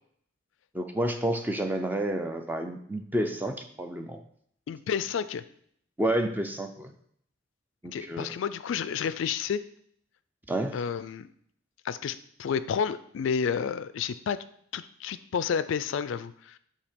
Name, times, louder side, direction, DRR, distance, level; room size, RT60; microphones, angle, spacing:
voice 1, 0.7-4.2 6.0-6.9 7.8-8.3 10.5-10.8, right 1 dB, 10° right, 6 dB, 0.5 m, -30 dB
voice 2, 4.7-5.4 7.9-9.6 10.7-11.3 11.8-14.4 14.7-16.6, left 7 dB, 70° left, 14 dB, 0.3 m, -30 dB
8.2 x 2.8 x 5.1 m, 0.66 s
head